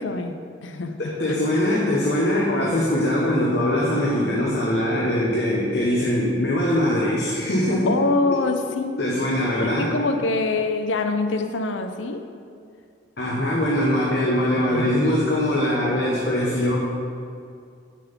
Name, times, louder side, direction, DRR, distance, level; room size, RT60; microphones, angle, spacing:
voice 1, 0.0-1.4 7.9-9.0 9.6-12.3 14.2-14.8, left 3 dB, 85° left, 7 dB, 0.6 m, -25 dB
voice 2, 1.0-7.9 9.0-9.9 13.2-16.8, left 1 dB, 60° left, -5 dB, 1.2 m, -22 dB
7.2 x 5.9 x 7.2 m, 2.3 s
head